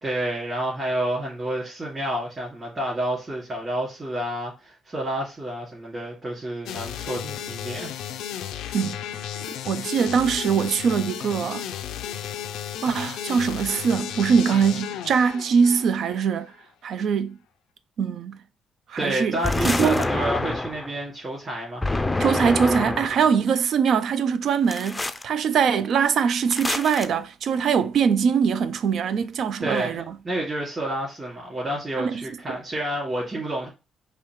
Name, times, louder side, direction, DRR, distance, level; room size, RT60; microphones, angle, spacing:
voice 1, 0.0-7.9 19.0-22.2 29.6-33.7, right 1 dB, 30° right, 2.4 m, -29 dB
sound 1, 6.7-16.3, left 10 dB, 90° left, 0.4 m, -34 dB
voice 2, 9.6-11.6 12.8-16.5 16.8-17.4 18.0-18.4 18.9-19.4 19.6-20.0 22.2-30.2 32.0-32.6, right 6 dB, 65° right, 0.3 m, -22 dB
sound 2, 19.4-20.9 21.8-23.3 24.7-25.2 26.5-27.1, left 2 dB, 15° left, 0.4 m, -26 dB
4.9 x 2.8 x 3.0 m
cardioid pair, 90°, 0 cm